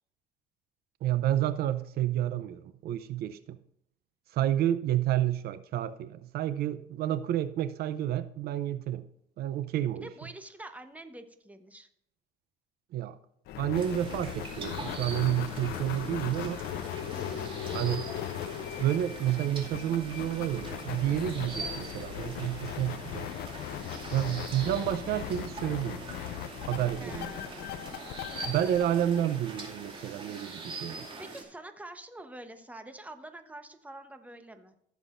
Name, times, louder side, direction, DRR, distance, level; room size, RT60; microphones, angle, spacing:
voice 1, 1.0-3.6 4.3-9.0 9.4-10.1 12.9-13.2 13.6-16.6 17.7-18.1 18.8-23.3 24.1-26.0 26.7-27.3 28.5-31.1, right 12 dB, 70° right, 13 dB, 0.6 m, -30 dB
voice 2, 10.0-11.9 17.1-17.9 23.9-24.1 27.0-27.7 31.2-34.7, right 1 dB, 10° right, 8 dB, 1.0 m, -46 dB
sound 1, 13.5-30.0, left 12 dB, 75° left, 0.6 m, -39 dB
sound 2, 13.7-31.4, right 3 dB, 30° right, 2.3 m, -43 dB
15.0 x 7.2 x 2.6 m, 0.76 s
cardioid pair, 110°, 17 cm